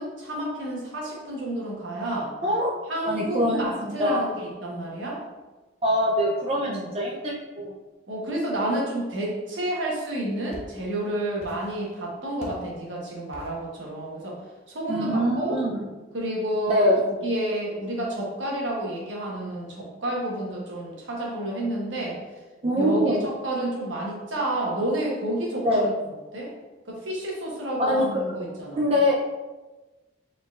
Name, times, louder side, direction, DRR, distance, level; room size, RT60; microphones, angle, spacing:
voice 1, 0.0-2.3 2.9-5.2 6.6-6.9 8.1-14.4 14.7-15.6 16.1-16.8 17.0-22.2 22.8-25.9 26.3-26.5 26.9-28.8, right 1 dB, 80° right, -3 dB, 1.2 m, -30 dB
voice 2, 3.1-4.3 5.8-7.8 14.9-15.8 16.7-17.0 22.6-23.2 25.6-25.9 27.8-28.2 28.8-29.1, equal, 30° right, -3 dB, 0.4 m, -24 dB
sound 1, 10.5-11.1 11.4-12.0 12.4-12.8 13.3-13.7, left 1 dB, 35° left, 0.6 m, -45 dB
4.6 x 3.8 x 2.4 m, 1.2 s
head